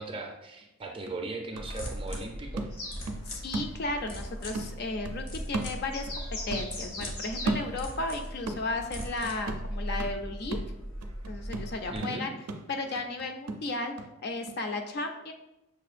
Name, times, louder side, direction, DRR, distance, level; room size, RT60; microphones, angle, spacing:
voice 1, 0.0-2.7 11.9-12.3, right 2 dB, 25° right, 2 dB, 0.4 m, -38 dB
sound 1, 0.6-0.7 1.1-4.2 4.5-6.3 6.5-8.1 8.5-14.1 14.5-14.6, right 2 dB, 85° right, 0.4 m, -37 dB
sound 2, 1.5-12.0, equal, 65° left, 0.9 m, -39 dB
sound 3, 2.7-3.0 5.9-7.5 8.7-8.8 9.5-9.6, left 2 dB, 85° left, 1.2 m, -39 dB
voice 2, 3.3-10.6 11.3-12.3 12.7-13.9 14.2-15.3, left 2 dB, 45° left, 5 dB, 0.4 m, -34 dB
6.3 x 2.4 x 2.5 m, 0.91 s
head